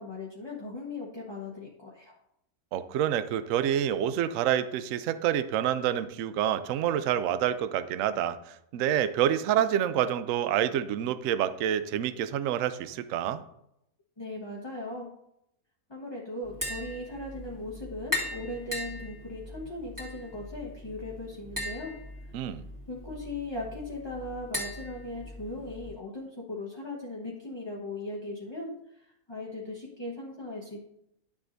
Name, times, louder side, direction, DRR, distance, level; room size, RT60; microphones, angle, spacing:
voice 1, 0.0-2.2 14.2-15.1 15.9-22.0 22.9-30.8, left 2 dB, 20° left, -3 dB, 1.1 m, -38 dB
voice 2, 2.7-8.4 8.7-13.4 22.3-22.6, right 10 dB, 70° right, 13 dB, 0.8 m, -27 dB
Tap, 16.4-25.9, left 1 dB, 10° right, 2.3 m, -39 dB
11.5 x 7.1 x 2.6 m, 0.78 s
omnidirectional pair, 1.7 m